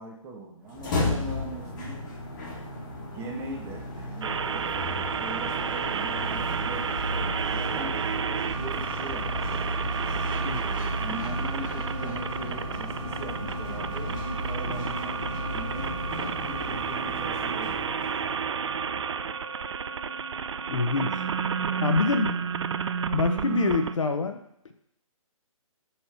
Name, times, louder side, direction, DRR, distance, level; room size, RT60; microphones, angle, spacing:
voice 1, 0.0-2.1 3.1-8.1 8.5-9.7 10.6-15.9 16.4-18.2, right 2 dB, 15° right, -1 dB, 0.9 m, -41 dB
sound 1, 0.7-18.8, equal, 35° left, 1.3 m, -34 dB
sound 2, 4.2-24.0, right 7 dB, 55° right, 0.4 m, -31 dB
Organ, 11.8-22.5, right 1 dB, 80° right, 1.4 m, -45 dB
voice 2, 20.7-21.2 21.8-22.4 23.1-24.7, left 4 dB, 60° left, 6 dB, 0.8 m, -26 dB
5.3 x 4.3 x 5.7 m, 0.75 s
figure-of-eight pair, 135°, 18 cm